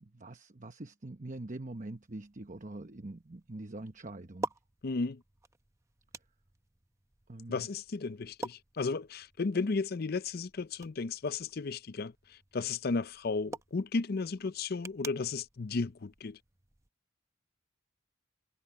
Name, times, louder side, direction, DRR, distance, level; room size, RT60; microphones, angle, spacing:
voice 1, 0.0-4.5 7.3-7.7, right 2 dB, 40° right, 1.0 m, -44 dB
sound 1, 1.7-16.9, right 2 dB, 15° right, 0.7 m, -48 dB
voice 2, 4.8-5.2 7.5-16.4, left 4 dB, 50° left, 0.5 m, -34 dB
head